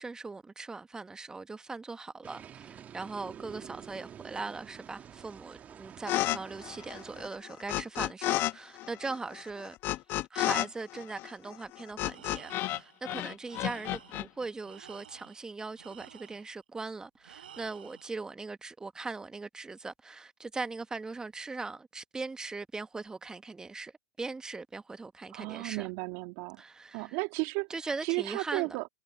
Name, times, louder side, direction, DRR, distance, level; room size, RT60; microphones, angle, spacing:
voice 1, 0.0-9.7 10.3-23.9 24.2-25.9 26.6-27.2 27.7-28.8, right 3 dB, 15° right, 1.1 m, -40 dB
sound 1, 2.2-7.3, right 9 dB, 30° right, 2.0 m, -48 dB
sound 2, 6.1-6.4 6.6-8.5 8.8-12.8 13.0-14.2, left 16 dB, 45° left, 1.0 m, -31 dB
Tools, 12.1-13.0 13.4-14.3 14.6-16.6 17.2-18.2, right 9 dB, 80° right, 7.9 m, -52 dB
voice 2, 25.3-26.6 26.9-27.7 28.0-28.9, right 28 dB, 55° right, 1.9 m, -33 dB
hypercardioid pair, 95°, 5 cm